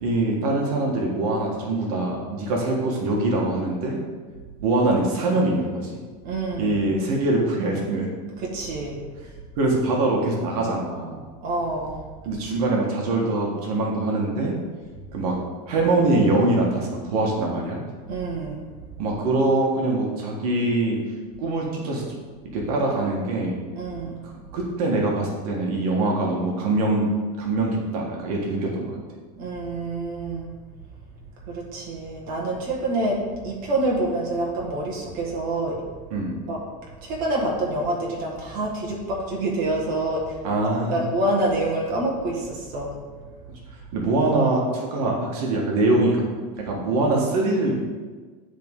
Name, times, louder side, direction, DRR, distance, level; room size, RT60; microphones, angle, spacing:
voice 1, 0.0-4.0 4.6-5.9 6.6-8.1 9.6-11.3 12.2-14.5 15.1-15.4 15.7-17.8 19.0-21.0 21.4-22.0 22.5-23.6 24.2-27.1 27.4-29.0 36.1-36.3 40.4-41.0 43.9-46.2 46.6-47.8, right 2 dB, 75° right, -1 dB, 1.6 m, -23 dB
voice 2, 6.2-6.8 8.4-9.0 11.4-12.0 18.1-18.6 23.7-24.2 29.3-30.5 31.5-35.8 36.5-36.6 37.0-40.4 40.9-42.9, right 2 dB, 45° right, -2 dB, 1.6 m, -27 dB
10.0 x 3.8 x 3.7 m, 1.4 s
supercardioid pair, 145°, 19 cm